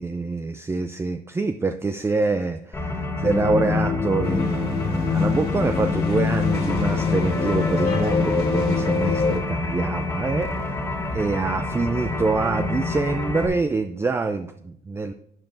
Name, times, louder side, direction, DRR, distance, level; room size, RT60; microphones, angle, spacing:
voice 1, 0.0-10.9 11.1-15.1, right 3 dB, 15° right, 8 dB, 0.4 m, -25 dB
sound 1, 2.7-13.5, left 2 dB, 15° left, 1.9 m, -29 dB
sound 2, 3.2-9.4, left 5 dB, 40° left, 1.2 m, -24 dB
sound 3, 4.2-9.4, left 4 dB, 70° left, 1.9 m, -36 dB
12.0 x 6.8 x 2.6 m, 0.67 s
cardioid pair, 110°, 17 cm